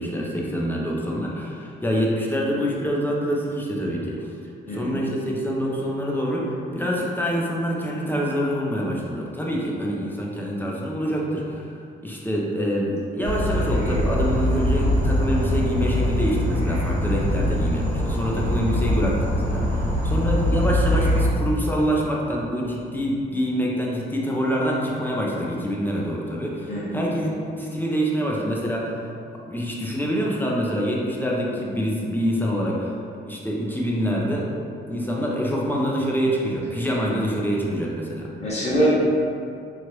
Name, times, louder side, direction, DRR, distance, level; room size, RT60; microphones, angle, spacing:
voice 1, 0.0-4.3 4.7-11.6 12.0-29.0 29.5-32.9 33.3-34.5 34.9-38.3, equal, 10° left, -4 dB, 0.5 m, -26 dB
voice 2, 4.7-5.0 26.7-27.0 38.4-38.9, right 1 dB, 35° left, -7 dB, 0.9 m, -24 dB
Insect / Frog, 13.2-21.3, equal, 60° right, 1.3 m, -23 dB
3.0 x 2.4 x 3.0 m, 2.4 s
cardioid pair, 90°, 20 cm